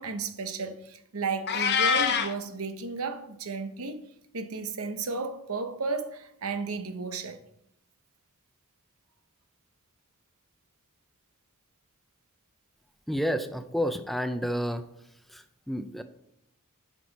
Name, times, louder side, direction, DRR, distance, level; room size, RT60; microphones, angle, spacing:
voice 1, 0.0-4.0 4.3-7.4, right 4 dB, 80° right, 0.9 m, -33 dB
Meow, 1.5-2.3, left 6 dB, 55° left, 0.7 m, -24 dB
voice 2, 13.1-14.9 15.3-16.0, equal, ahead, 0.4 m, -30 dB
9.2 x 6.1 x 4.1 m
head